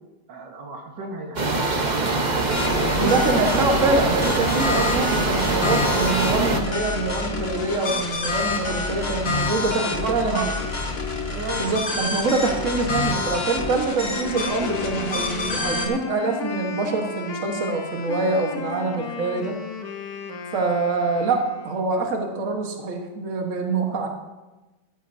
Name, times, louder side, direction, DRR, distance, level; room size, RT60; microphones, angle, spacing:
voice 1, 0.3-1.8 2.6-3.2 3.5-3.7 4.6-5.0 9.6-10.6 11.3-11.7, right 4 dB, 80° right, 1 dB, 2.1 m, -32 dB
sound 1, 1.4-6.6, right 3 dB, 35° right, 0.9 m, -23 dB
sound 2, 2.5-15.9, left 3 dB, 40° left, 1.3 m, -27 dB
voice 2, 3.0-10.4 11.6-19.5 20.5-24.1, right 3 dB, 50° right, 2 dB, 1.6 m, -25 dB
Wind instrument woodwind instrument, 14.2-21.9, left 5 dB, 65° left, 1.4 m, -34 dB
14.0 x 12.0 x 2.7 m, 1.1 s
omnidirectional pair, 1.9 m